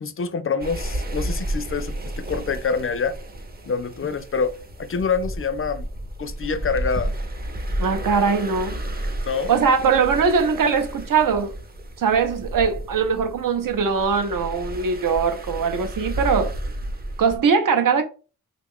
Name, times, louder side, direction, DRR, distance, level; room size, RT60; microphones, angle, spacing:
voice 1, 0.0-3.2 3.6-4.5 4.8-5.9 6.2-7.2 9.3-9.5, left 5 dB, 40° left, 0.4 m, -26 dB
sound 1, 0.6-17.4, right 1 dB, 25° right, 0.7 m, -32 dB
voice 2, 7.8-8.8 9.5-11.5 12.0-16.5 17.2-18.0, right 5 dB, 70° right, 0.7 m, -21 dB
3.4 x 2.3 x 3.6 m
wide cardioid pair, 80°, 34 cm